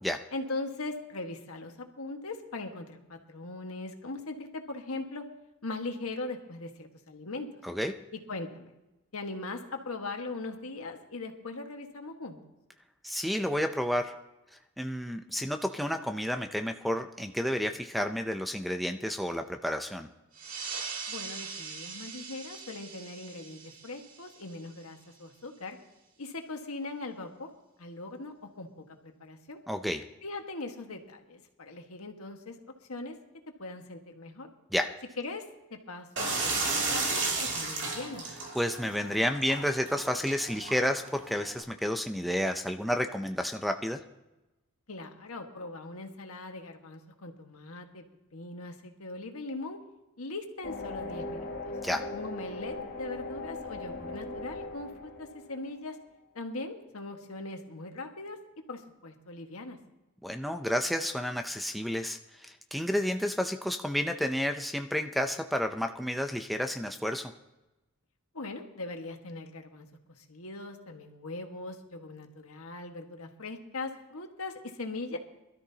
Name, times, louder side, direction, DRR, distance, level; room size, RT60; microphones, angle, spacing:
voice 1, 0.3-5.2 5.6-7.6 8.1-8.7 9.1-12.4 21.1-25.8 26.2-27.5 27.8-29.6 30.2-32.6 32.9-33.2 33.6-34.5 35.2-38.2 44.9-48.0 48.3-49.8 50.2-51.7 52.1-56.0 56.3-58.4 58.7-59.8 68.3-69.9 70.2-75.2, left 2 dB, 80° left, 4 dB, 1.6 m, -40 dB
voice 2, 13.0-14.1 14.8-20.1 29.7-30.0 34.7-34.9 38.5-44.0 51.8-52.0 60.2-67.3, equal, ahead, 5 dB, 0.5 m, -31 dB
sound 1, 20.3-25.4, right 5 dB, 75° right, 1.9 m, -42 dB
sound 2, 36.2-41.6, right 3 dB, 55° right, 2.8 m, -33 dB
sound 3, 50.6-55.9, left 2 dB, 40° left, 1.4 m, -39 dB
22.0 x 13.0 x 2.8 m, 0.99 s
head